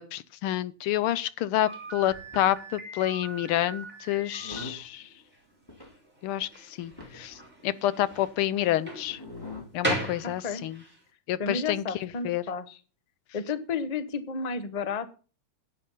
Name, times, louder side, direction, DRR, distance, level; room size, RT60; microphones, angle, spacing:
voice 1, 0.0-5.1 6.2-9.2 9.7-10.8 11.3-12.4, left 13 dB, 90° left, 1.6 m, -29 dB
Slam, 1.7-11.0, right 2 dB, 5° right, 4.7 m, -38 dB
sound 1, 2.0-2.5 3.4-3.7 4.2-4.9 5.7-5.9 6.5-6.6 6.8-7.4 8.1-8.3 9.1-9.7 10.3-10.4, left 3 dB, 10° left, 2.7 m, -43 dB
voice 2, 11.4-12.8 13.3-15.1, left 5 dB, 35° left, 0.6 m, -32 dB
11.0 x 8.9 x 5.5 m
omnidirectional pair, 2.3 m